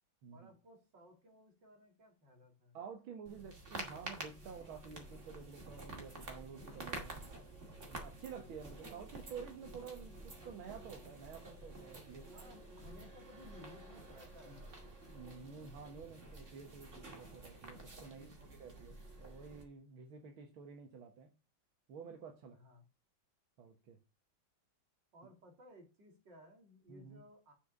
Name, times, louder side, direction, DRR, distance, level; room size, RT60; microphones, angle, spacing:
voice 1, 0.3-2.8 7.0-7.2 8.3-8.5 12.3-14.7 18.0-19.0 22.5-22.8 25.1-27.5, left 1 dB, 60° right, 2 dB, 3.5 m, -59 dB
voice 2, 2.7-7.2 7.9-12.3 14.5-14.6 15.1-21.3 21.9-22.6 23.6-24.0 26.9-27.2, right 6 dB, 85° right, 4 dB, 2.1 m, -51 dB
sound 1, 3.3-19.6, right 2 dB, 35° right, 2.6 m, -50 dB
6.9 x 5.8 x 7.2 m, 0.30 s
omnidirectional pair, 2.2 m